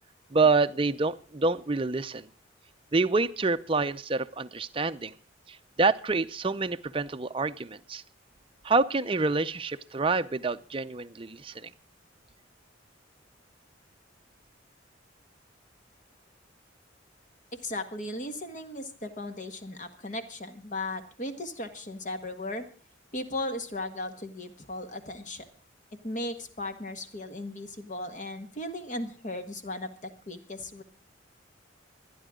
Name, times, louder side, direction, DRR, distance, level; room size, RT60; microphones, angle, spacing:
voice 1, 0.3-2.3 2.9-5.1 5.5-8.0 8.6-11.7, right 3 dB, 25° right, 10 dB, 0.6 m, -27 dB
voice 2, 17.6-22.6 23.1-25.4 26.0-30.8, left 1 dB, 40° left, 8 dB, 1.7 m, -36 dB
25.0 x 10.0 x 3.7 m, 0.39 s
head